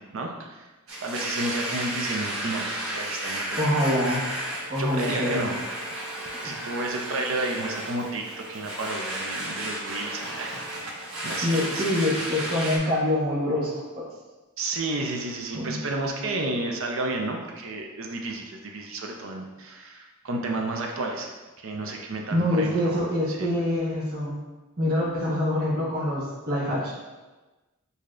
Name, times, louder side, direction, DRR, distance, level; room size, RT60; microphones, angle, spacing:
voice 1, 0.1-0.7 1.0-3.8 4.8-5.6 6.4-11.8 14.6-21.3 21.6-23.5, right 2 dB, 65° right, 2 dB, 0.5 m, -32 dB
Domestic sounds home sounds, 0.9-12.8, right 1 dB, 80° right, 1.1 m, -33 dB
voice 2, 3.6-4.3 4.7-5.5 11.4-14.1 15.5-15.8 22.3-24.4 24.8-26.9, left 1 dB, 45° right, -5 dB, 1.2 m, -25 dB
6.5 x 2.7 x 2.4 m, 1.2 s
head